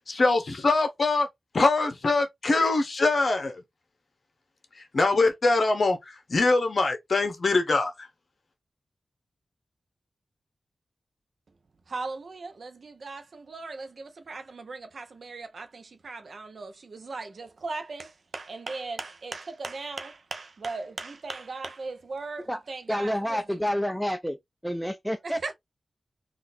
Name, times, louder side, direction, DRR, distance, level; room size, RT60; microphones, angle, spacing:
voice 1, 0.1-1.3 1.5-3.5 4.9-6.0 6.3-7.9, left 3 dB, 55° left, 0.8 m, -23 dB
voice 2, 11.9-23.6 25.2-25.5, right 3 dB, 65° right, 0.6 m, -38 dB
voice 3, 22.9-24.4 24.6-25.4, equal, ahead, 0.3 m, -28 dB
3.8 x 2.5 x 2.6 m
wide cardioid pair, 100°, 0 cm